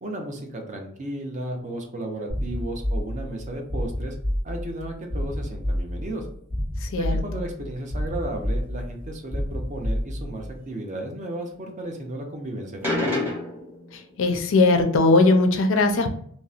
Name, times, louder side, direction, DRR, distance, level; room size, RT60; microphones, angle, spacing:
voice 1, 0.0-4.1 4.4-6.3 7.0-13.3, right 1 dB, 35° right, 3 dB, 0.6 m, -34 dB
sound 1, 2.3-10.6, equal, 50° right, 1.3 m, -29 dB
voice 2, 6.8-7.1 13.9-16.2, left 3 dB, 65° left, 5 dB, 0.4 m, -19 dB
sound 2, 12.8-13.9, left 2 dB, 10° right, 1.0 m, -27 dB
2.8 x 2.0 x 2.3 m, 0.62 s
head